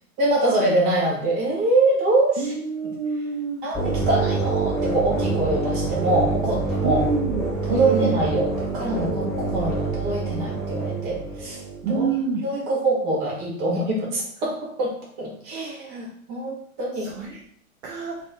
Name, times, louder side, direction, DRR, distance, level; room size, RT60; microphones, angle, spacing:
voice 1, 0.2-2.5 2.8-2.9 3.6-7.0 7.6-12.1 12.4-17.1, right 2 dB, 30° right, -3 dB, 1.4 m, -24 dB
voice 2, 2.4-3.6 6.8-7.4 7.7-8.1 11.8-12.4 17.0-17.4 17.8-18.2, right 5 dB, 50° right, -3 dB, 0.7 m, -27 dB
sound 1, 3.7-11.8, right 3 dB, ahead, 0.4 m, -26 dB
3.4 x 2.8 x 3.5 m, 0.63 s
figure-of-eight pair, 105°, 43 cm